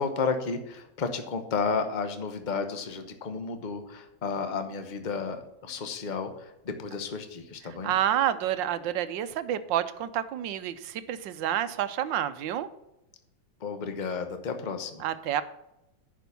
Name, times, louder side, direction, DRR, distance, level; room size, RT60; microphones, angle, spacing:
voice 1, 0.0-7.9 13.6-15.0, left 5 dB, 35° left, 7 dB, 0.8 m, -32 dB
voice 2, 7.8-12.7 15.0-15.4, right 11 dB, 75° right, 13 dB, 1.3 m, -29 dB
10.5 x 5.1 x 6.9 m, 0.90 s
omnidirectional pair, 2.2 m